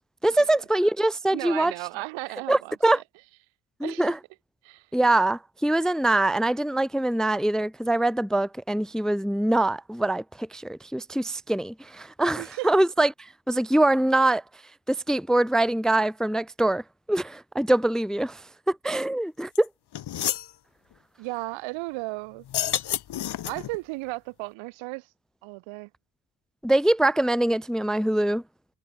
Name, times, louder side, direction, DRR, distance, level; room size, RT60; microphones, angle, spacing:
voice 1, 0.2-1.7 2.5-3.0 3.8-4.2 4.9-14.4 14.9-16.8 17.1-18.4 18.7-19.7 26.6-28.4, right 1 dB, ahead, 0.7 m, -23 dB
voice 2, 1.3-3.0 3.8-4.1 4.6-4.9 12.4-12.7 21.2-22.7 23.4-25.1 25.4-25.9, right 24 dB, 70° right, 1.9 m, -35 dB
sound 1, 19.5-19.6 19.9-20.5 22.4-23.8, left 12 dB, 55° left, 2.0 m, -29 dB
hypercardioid pair, 50°, 48 cm